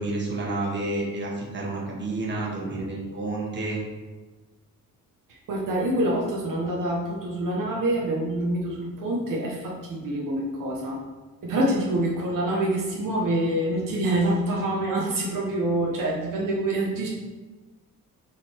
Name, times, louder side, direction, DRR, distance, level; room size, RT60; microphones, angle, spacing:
voice 1, 0.0-3.8, right 2 dB, 30° right, -3 dB, 1.7 m, -30 dB
voice 2, 5.3-11.0 11.4-17.1, right 1 dB, 60° right, -3 dB, 1.3 m, -26 dB
7.2 x 4.2 x 4.5 m, 1.2 s
cardioid pair, 130°, 35 cm